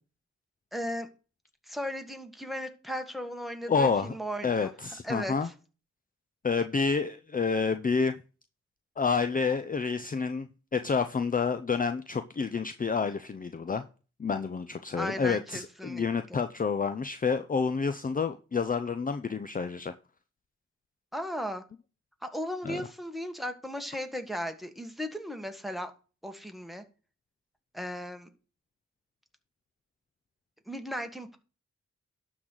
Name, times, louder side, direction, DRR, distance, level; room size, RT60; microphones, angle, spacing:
voice 1, 0.7-1.1 1.7-4.7 5.0-5.5 14.9-16.0 16.3-16.4 21.1-21.6 22.2-25.9 26.2-26.8 27.7-28.3 30.7-31.4, equal, ahead, 1.6 m, -36 dB
voice 2, 3.7-4.1 4.4-5.5 6.4-8.1 9.0-13.8 14.2-19.9 22.6-22.8, left 5 dB, 30° left, 0.6 m, -29 dB
12.0 x 4.0 x 6.3 m
cardioid pair, 60°, 29 cm